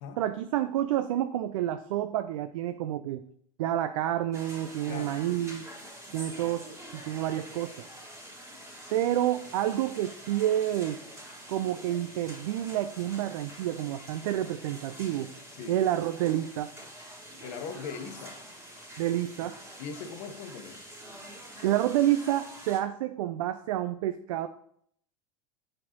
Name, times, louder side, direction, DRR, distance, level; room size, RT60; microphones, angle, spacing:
voice 1, 0.2-3.2 3.6-5.7 6.1-7.9 8.9-11.0 11.5-15.3 15.7-16.7 19.0-19.6 21.6-24.5, right 12 dB, 75° right, 0.4 m, -29 dB
sound 1, 4.3-22.8, right 1 dB, 15° right, 1.8 m, -46 dB
voice 2, 4.9-5.2 15.5-15.8 17.4-18.4 19.8-20.8, left 6 dB, 60° left, 1.0 m, -40 dB
8.1 x 4.4 x 2.9 m
hypercardioid pair, 90°, 17 cm